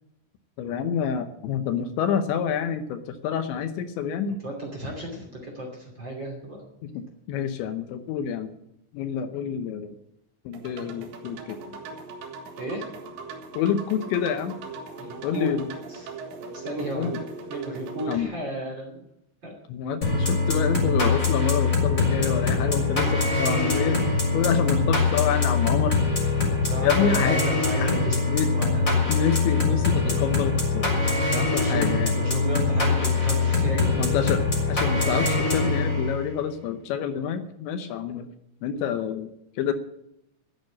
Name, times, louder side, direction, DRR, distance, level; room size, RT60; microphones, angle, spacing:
voice 1, 0.6-4.4 6.8-7.0 7.3-8.5 8.9-9.9 10.5-11.8 13.5-14.5 15.2-15.7 16.9-17.2 18.1-18.3 19.7-24.0 24.3-25.9 26.8-27.4 27.8-27.9 28.3-28.5 29.1-31.0 31.3-32.2 34.0-34.4 34.7-38.3 38.6-39.3 39.6-39.7, left 8 dB, 75° left, 9 dB, 3.0 m, -27 dB
voice 2, 4.3-6.6 12.6-12.8 15.0-16.1 16.5-19.0 19.4-19.5 25.1-25.2 26.6-28.2 28.5-28.9 31.5-34.1, right 1 dB, 30° right, 0 dB, 2.7 m, -34 dB
sound 1, 10.5-18.2, right 4 dB, 70° right, 3.8 m, -39 dB
sound 2, 20.0-36.3, left 3 dB, 15° left, 4.8 m, -23 dB
13.0 x 9.0 x 8.5 m, 0.80 s
omnidirectional pair, 5.5 m